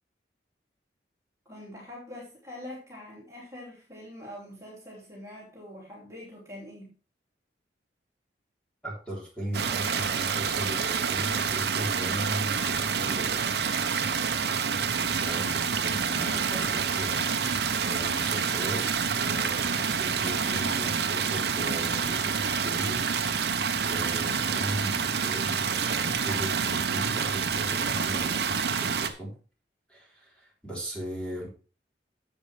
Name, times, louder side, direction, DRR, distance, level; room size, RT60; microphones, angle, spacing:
voice 1, 1.4-6.9, left 1 dB, 15° right, -4 dB, 3.0 m, -44 dB
voice 2, 8.8-13.5 15.1-18.8 19.1-23.1 23.8-29.3 29.9-31.5, right 1 dB, 5° left, -4 dB, 3.7 m, -38 dB
sound 1, 9.5-29.1, right 6 dB, 65° right, 0.8 m, -28 dB
10.5 x 7.9 x 3.3 m, 0.36 s
head